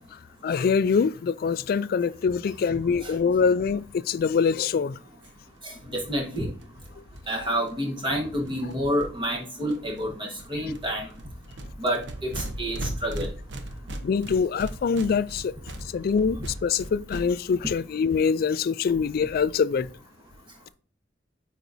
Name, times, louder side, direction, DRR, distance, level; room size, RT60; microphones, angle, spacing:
voice 1, 0.4-5.0 14.0-15.5 15.9-19.9, left 6 dB, 55° left, 0.3 m, -24 dB
sound 1, 5.2-5.3 5.6-5.7 5.9-6.0 6.1-9.3 9.7-10.0 10.3-17.6, right 1 dB, 85° right, 0.8 m, -38 dB
voice 2, 5.6-6.5 7.3-11.1 11.8-13.3, equal, 30° right, 1.3 m, -29 dB
9.1 x 4.1 x 2.7 m
head